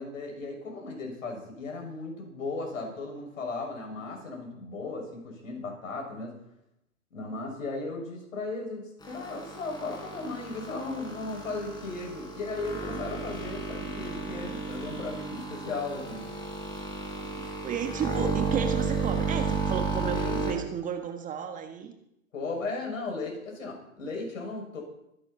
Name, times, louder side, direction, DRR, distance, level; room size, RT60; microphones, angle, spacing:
voice 1, 0.0-6.3 7.1-16.2 20.1-20.4 22.3-24.8, left 3 dB, 65° left, 1 dB, 6.8 m, -36 dB
sound 1, 9.0-20.5, right 3 dB, 10° left, 4.5 m, -33 dB
voice 2, 17.2-21.9, right 8 dB, 20° right, 5 dB, 1.5 m, -33 dB
23.5 x 11.0 x 4.4 m, 0.79 s
figure-of-eight pair, 115°, 42 cm